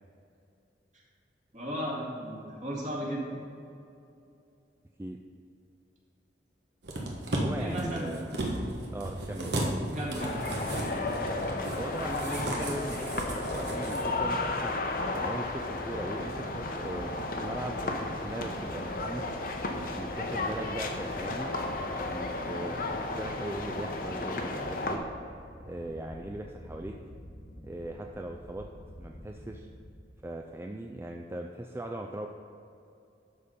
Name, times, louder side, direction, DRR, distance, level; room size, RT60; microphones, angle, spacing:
voice 1, 1.5-3.3 7.6-8.2 9.9-10.4, equal, 45° right, -4 dB, 2.1 m, -35 dB
sound 1, 6.8-14.0 14.3-14.4, right 1 dB, 75° right, 1.3 m, -35 dB
voice 2, 7.4-8.3 8.9-9.8 11.8-14.7 15.1-19.3 19.9-21.5 21.9-25.0 25.7-26.9 27.6-28.7 29.0-29.7 30.2-32.3, right 1 dB, 15° right, 2 dB, 0.3 m, -39 dB
sound 2, 10.1-29.9, equal, 90° left, 1.6 m, -48 dB
sound 3, 10.2-25.0, left 2 dB, 50° left, 0.8 m, -33 dB
12.0 x 4.2 x 5.1 m, 2.6 s
head